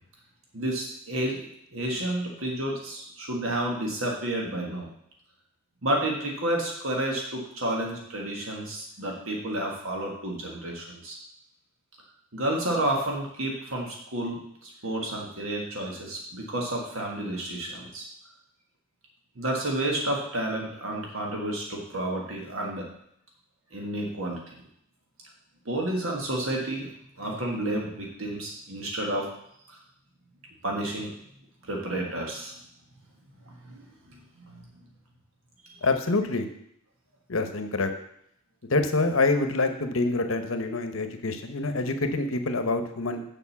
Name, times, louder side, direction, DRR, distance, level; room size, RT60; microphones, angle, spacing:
voice 1, 0.5-4.9 5.8-11.2 12.3-18.1 19.3-22.9 23.7-24.4 25.6-26.9 27.2-29.3 29.7-29.8 30.6-31.1 31.6-32.5 33.4-33.8 34.1-34.2 34.5-34.6 35.7-35.9, right 1 dB, 70° right, -1 dB, 1.5 m, -30 dB
voice 2, 35.8-36.5 37.3-37.9 38.6-43.2, left 3 dB, 70° left, 8 dB, 1.0 m, -26 dB
7.1 x 5.3 x 7.1 m, 0.73 s
head